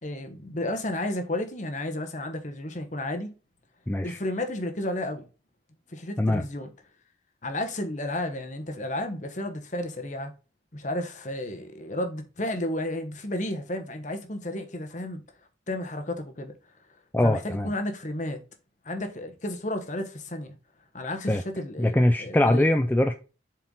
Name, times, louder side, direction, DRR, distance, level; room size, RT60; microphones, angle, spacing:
voice 1, 0.0-3.3 4.0-5.3 5.9-6.7 7.4-10.3 10.7-15.2 15.7-16.5 17.2-18.4 18.8-20.5 20.9-22.7, left 1 dB, 40° left, 1.2 m, -32 dB
voice 2, 3.9-4.2 6.2-6.5 17.1-17.7 21.3-21.4 21.8-23.1, left 1 dB, 10° left, 0.4 m, -22 dB
7.2 x 4.5 x 3.9 m
head